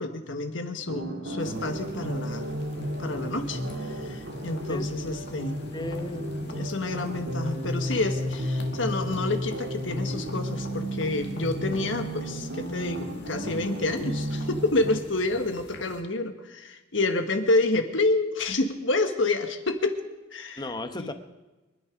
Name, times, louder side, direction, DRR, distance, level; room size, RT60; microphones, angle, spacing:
voice 1, 0.0-2.5 3.0-3.6 4.0-5.6 6.5-19.9 20.3-20.6 20.9-21.1, left 2 dB, 80° left, 6 dB, 1.6 m, -28 dB
sound 1, 0.9-15.0, equal, 90° right, 2.2 m, -33 dB
sound 2, 1.4-16.0, left 2 dB, 65° left, 1.9 m, -48 dB
voice 2, 5.7-6.6 20.6-21.1, left 2 dB, 25° left, 8 dB, 1.0 m, -35 dB
24.5 x 10.0 x 5.2 m, 1.1 s
head